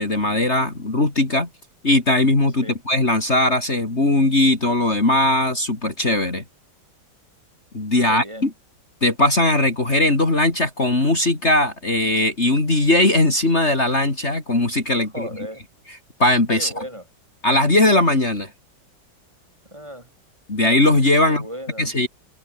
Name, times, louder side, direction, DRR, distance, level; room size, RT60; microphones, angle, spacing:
voice 1, 0.0-1.5 1.8-6.4 7.7-8.5 9.0-15.3 16.2-16.8 17.4-18.5 20.5-21.5 21.8-22.1, left 1 dB, 35° left, 4.0 m, -19 dB
voice 2, 8.1-8.5 15.1-15.6 16.6-17.0 19.7-20.1 21.2-21.9, equal, 15° right, 7.0 m, -36 dB
omnidirectional pair, 2.1 m